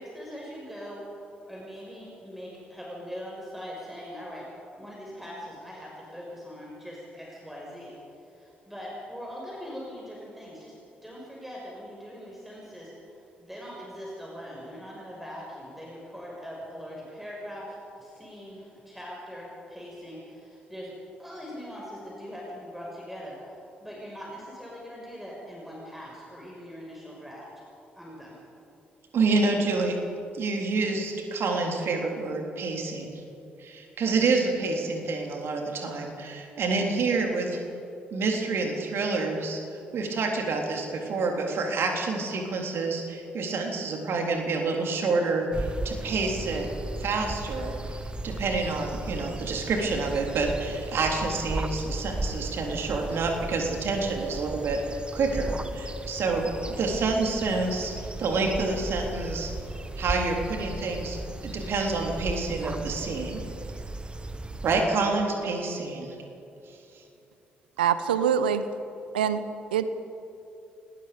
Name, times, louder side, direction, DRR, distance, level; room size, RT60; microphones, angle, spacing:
voice 1, 0.0-4.5 4.8-10.8 11.0-20.9 21.2-27.5 28.0-28.4, equal, 5° right, -4 dB, 6.3 m, -41 dB
voice 2, 29.1-30.0 30.3-33.2 33.6-37.6 38.1-39.6 39.9-46.7 47.0-47.8 48.2-54.8 55.1-57.9 58.2-59.5 60.0-63.4 64.6-66.1, right 3 dB, 50° right, 2 dB, 3.7 m, -28 dB
sound 1, 45.5-64.8, right 2 dB, 20° right, 1.6 m, -36 dB
voice 3, 67.8-68.6 69.1-69.4 69.7-69.9, right 8 dB, 80° right, 12 dB, 0.7 m, -24 dB
28.5 x 20.0 x 5.3 m, 2.8 s
figure-of-eight pair, 40°, 5 cm